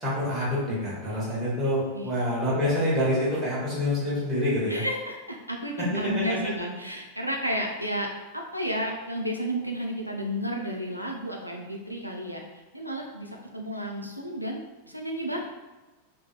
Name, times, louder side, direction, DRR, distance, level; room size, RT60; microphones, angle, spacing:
voice 1, 0.0-4.8 5.8-5.9, left 1 dB, 15° right, -8 dB, 1.2 m, -26 dB
voice 2, 4.7-8.1 8.5-12.4 12.7-15.4, equal, 90° right, 1 dB, 0.3 m, -32 dB
2.6 x 2.4 x 2.2 m, 1.2 s
figure-of-eight pair, 90°, 0 cm